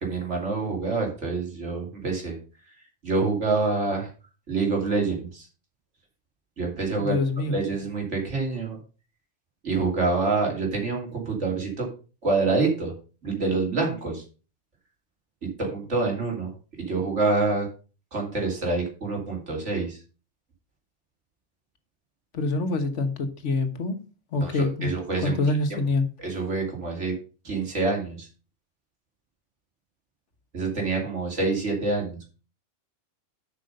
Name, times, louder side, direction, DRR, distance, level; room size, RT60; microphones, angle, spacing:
voice 1, 0.0-2.3 3.0-4.1 4.5-5.5 6.6-7.2 7.5-8.8 9.6-11.9 12.2-12.9 13.2-14.2 15.4-16.5 16.8-17.7 18.1-20.0 24.4-25.4 25.7-25.8 26.2-27.2 27.4-28.3 30.5-32.2, right 3 dB, 90° right, 3.1 m, -26 dB
voice 2, 7.0-7.6 22.3-24.0 24.3-24.9 25.2-26.0, left 2 dB, 90° left, 1.5 m, -25 dB
7.6 x 5.8 x 5.3 m
omnidirectional pair, 1.2 m